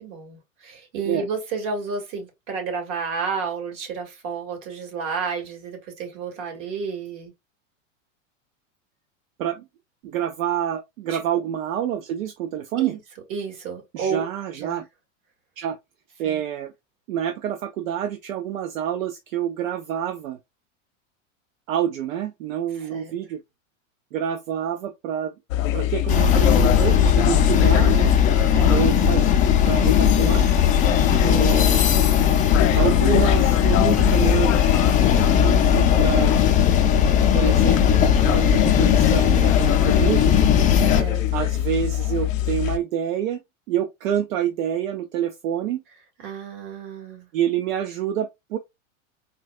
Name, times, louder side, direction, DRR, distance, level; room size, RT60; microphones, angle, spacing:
voice 1, 0.0-7.3 11.1-11.2 12.7-13.0 13.3-14.2 14.6-14.8 16.2-16.4 22.8-23.1 28.5-28.8 40.9-41.4 46.2-47.3, right 5 dB, 55° right, 1.7 m, -31 dB
voice 2, 10.0-13.0 13.9-14.8 15.6-15.8 16.2-16.7 17.1-20.4 21.7-23.4 24.1-25.3 25.7-28.1 28.7-30.5 31.2-32.0 32.8-34.6 35.4-36.4 37.3-40.5 41.3-43.4 43.7-45.8 47.3-48.6, right 10 dB, 80° right, 0.6 m, -27 dB
sound 1, 25.5-42.8, left 13 dB, 75° left, 0.6 m, -24 dB
sound 2, 26.1-41.0, left 8 dB, 20° left, 0.4 m, -18 dB
3.8 x 2.2 x 2.3 m
hypercardioid pair, 110°, 40 cm